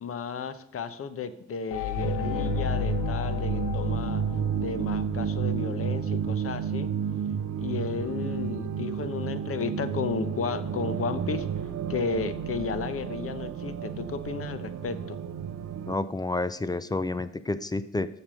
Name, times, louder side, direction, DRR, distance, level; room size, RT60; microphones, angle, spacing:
voice 1, 0.0-4.2 4.5-6.9 7.6-11.5 11.9-15.2, left 5 dB, 50° left, 12 dB, 0.9 m, -33 dB
sound 1, 1.7-5.5, left 13 dB, 90° left, 0.6 m, -33 dB
sound 2, 2.0-16.0, right 8 dB, 60° right, 0.7 m, -31 dB
voice 2, 15.9-18.1, left 2 dB, 15° left, 13 dB, 0.4 m, -29 dB
7.1 x 6.6 x 6.3 m, 0.74 s
cardioid pair, 90°, 30 cm